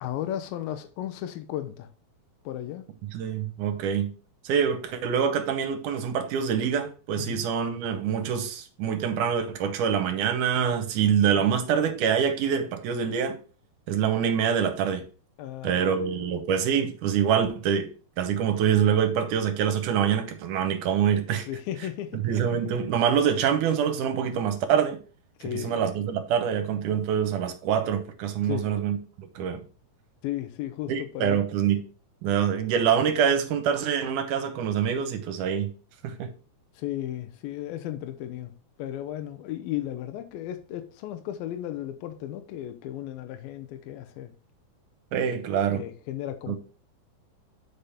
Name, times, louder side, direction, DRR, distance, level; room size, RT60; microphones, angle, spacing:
voice 1, 0.0-1.9 2.5-2.9 7.1-7.4 11.3-11.6 15.4-15.9 21.4-22.2 22.7-22.8 25.4-25.8 28.4-28.7 30.2-31.4 36.8-38.5 38.8-44.3 45.7-46.6, left 12 dB, 80° left, 2.4 m, -35 dB
voice 2, 3.1-4.1 4.4-13.4 13.9-15.0 15.6-17.9 18.2-21.5 22.2-25.0 25.5-29.6 30.9-31.8 32.2-35.7 36.0-36.3 45.1-45.8 46.5-46.6, right 8 dB, 70° right, 2.1 m, -25 dB
8.5 x 5.2 x 3.5 m
omnidirectional pair, 4.3 m